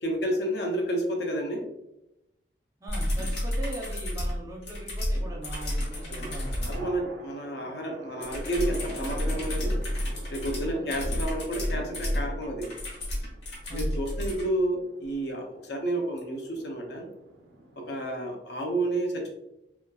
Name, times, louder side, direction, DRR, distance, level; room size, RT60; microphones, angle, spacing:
voice 1, 0.0-1.7 6.1-6.3 6.6-9.8 10.3-12.7 13.7-17.1 17.8-19.3, right 1 dB, 65° left, 2 dB, 0.5 m, -30 dB
voice 2, 2.8-6.8 10.7-11.2 13.7-13.9, right 1 dB, 20° right, -1 dB, 0.5 m, -41 dB
sound 1, 2.9-6.8 8.2-14.4 16.2-16.3, equal, 85° left, 1.0 m, -31 dB
sound 2, 5.0-18.0, right 2 dB, 85° right, 0.4 m, -48 dB
2.9 x 2.3 x 2.2 m, 0.88 s
head